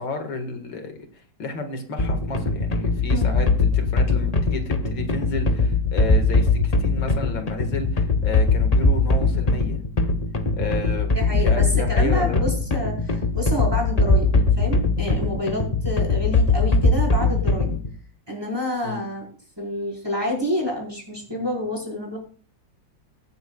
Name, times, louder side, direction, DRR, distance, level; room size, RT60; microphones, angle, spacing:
voice 1, 0.0-9.8 10.5-12.4 18.8-19.0, left 3 dB, 80° left, 4 dB, 2.4 m, -32 dB
sound 1, 2.0-17.9, left 3 dB, 30° left, 0.7 m, -21 dB
voice 2, 11.1-17.7 18.3-19.2 19.6-22.2, left 1 dB, 10° right, -2 dB, 4.5 m, -28 dB
23.0 x 8.0 x 2.3 m, 0.43 s
omnidirectional pair, 2.1 m